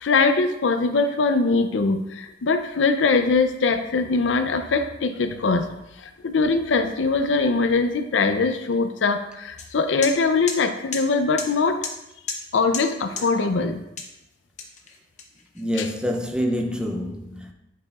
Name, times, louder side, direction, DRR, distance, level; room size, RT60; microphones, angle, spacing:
voice 1, 0.0-5.8 6.0-11.8 12.5-13.8 15.8-15.9, left 4 dB, 90° left, 0.5 m, -22 dB
sound 1, 9.6-9.7 10.0-10.1 10.5-10.6 10.9-11.0 11.4-11.5 11.8-11.9 12.3-12.4 12.7-12.8 13.2-13.3 14.0-14.1 14.6-15.6, left 5 dB, 40° left, 0.7 m, -31 dB
voice 2, 13.2-13.5 15.6-17.5, equal, 5° right, 0.5 m, -27 dB
8.3 x 4.8 x 2.4 m
head